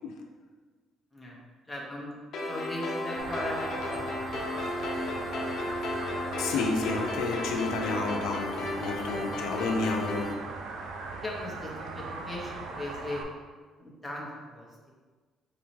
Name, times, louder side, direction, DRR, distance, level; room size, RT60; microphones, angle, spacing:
voice 1, 1.1-2.2 2.4-4.8 8.9-9.5 9.8-10.1 10.4-10.5 11.2-13.2 13.8-14.7, left 1 dB, 5° left, -4 dB, 0.7 m, -39 dB
sound 1, 2.3-10.3, left 2 dB, 45° left, 0.7 m, -34 dB
sound 2, 3.2-13.2, right 4 dB, 70° right, 0.4 m, -39 dB
voice 2, 6.4-10.3, left 3 dB, 85° left, 2 dB, 0.5 m, -30 dB
4.1 x 3.7 x 3.1 m, 1.4 s
cardioid pair, 175°, 0 cm